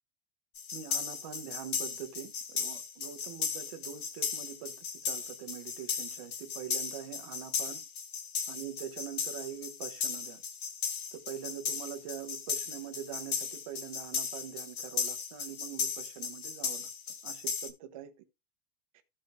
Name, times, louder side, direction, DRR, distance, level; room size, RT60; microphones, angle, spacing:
sound 1, 0.5-17.7, left 6 dB, 60° left, 1.6 m, -36 dB
voice 1, 0.7-4.7 5.0-7.8 8.5-10.4 11.1-16.9 17.2-18.1, right 10 dB, 25° right, 0.5 m, -44 dB
15.5 x 5.3 x 2.3 m
supercardioid pair, 175°, 49 cm